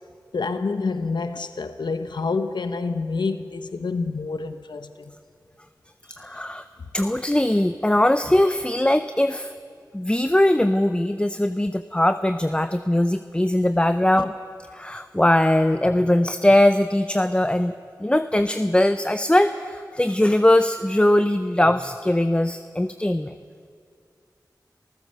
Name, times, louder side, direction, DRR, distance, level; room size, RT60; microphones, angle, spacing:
voice 1, 0.3-5.1, left 4 dB, 85° left, 0.7 m, -28 dB
voice 2, 6.1-6.6 6.9-9.5 9.9-14.3 14.7-17.7 18.0-23.3, left 1 dB, 15° left, 0.6 m, -20 dB
27.5 x 14.5 x 6.7 m
cardioid pair, 40°, 7 cm